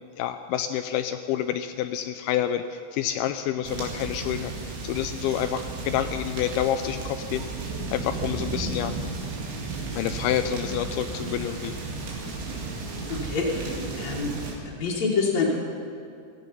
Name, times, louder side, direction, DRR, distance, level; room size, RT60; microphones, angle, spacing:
voice 1, 0.0-7.5 7.9-8.9 9.9-11.8, left 10 dB, 90° left, 8 dB, 2.2 m, -28 dB
sound 1, 3.6-14.5, right 3 dB, 90° right, 4.6 m, -34 dB
voice 2, 13.1-14.4 14.7-15.6, left 4 dB, 55° left, -5 dB, 2.3 m, -26 dB
17.5 x 14.5 x 5.4 m, 2.5 s
omnidirectional pair, 5.0 m